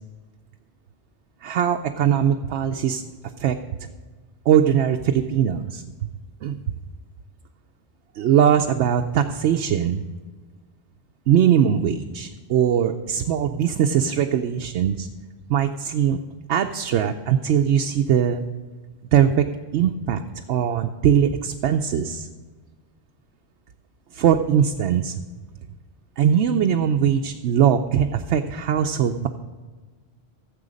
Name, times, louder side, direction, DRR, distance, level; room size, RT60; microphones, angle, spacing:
voice 1, 1.4-3.0 3.4-3.6 4.5-5.8 6.4-6.6 8.1-10.0 11.3-15.1 15.5-16.2 16.5-18.4 19.1-19.4 19.7-20.2 20.5-22.3 24.1-25.1 26.2-29.3, right 9 dB, 90° right, 4 dB, 0.9 m, -20 dB
13.5 x 7.6 x 5.1 m, 1.3 s
omnidirectional pair, 1.1 m